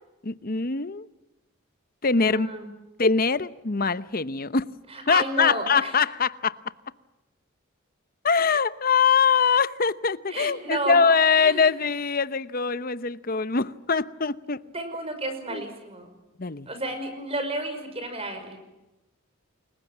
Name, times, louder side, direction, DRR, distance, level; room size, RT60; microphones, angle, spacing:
voice 1, 0.2-1.1 2.0-2.5 3.0-4.7 5.1-6.6 8.2-14.6 15.5-15.6 16.4-16.7, left 5 dB, 45° left, 0.9 m, -23 dB
voice 2, 2.1-2.7 4.9-5.9 10.3-11.0 11.3-11.7 14.7-16.1 16.7-18.6, right 1 dB, 30° right, 5.6 m, -32 dB
29.5 x 22.0 x 7.4 m
head